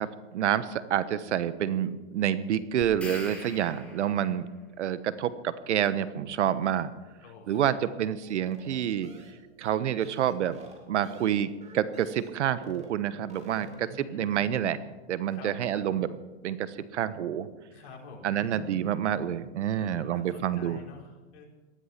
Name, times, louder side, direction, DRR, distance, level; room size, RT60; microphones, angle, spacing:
voice 1, 0.0-4.5 4.8-6.9 7.5-9.1 9.6-10.6 10.9-11.5 11.7-14.8 15.1-16.1 16.4-16.7 16.9-17.5 18.2-20.8, right 10 dB, 85° right, 15 dB, 1.2 m, -28 dB
sound 1, 2.8-4.4, left 2 dB, 5° left, 4.1 m, -43 dB
voice 2, 7.2-7.9 13.6-14.3 15.3-15.8 17.7-18.9 19.7-21.4, left 2 dB, 45° left, -1 dB, 4.9 m, -47 dB
sound 2, 8.2-12.4 12.6-12.9 13.2-14.0, right 3 dB, 20° right, 3.4 m, -50 dB
19.0 x 13.0 x 5.9 m, 1.2 s
hypercardioid pair, 135°, 34 cm